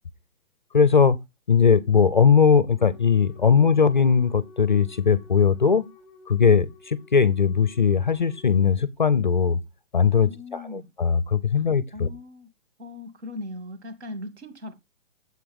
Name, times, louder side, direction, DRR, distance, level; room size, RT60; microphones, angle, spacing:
voice 1, 0.7-1.2 1.5-5.9 6.3-9.6 9.9-12.1, left 6 dB, 35° left, 0.6 m, -19 dB
Wind instrument woodwind instrument, 2.8-8.8, left 3 dB, 5° left, 1.8 m, -51 dB
voice 2, 10.2-10.9 11.5-11.7 11.9-12.5 12.8-14.7, left 2 dB, 55° right, 2.7 m, -39 dB
8.8 x 7.8 x 3.5 m
hypercardioid pair, 165°, 40 cm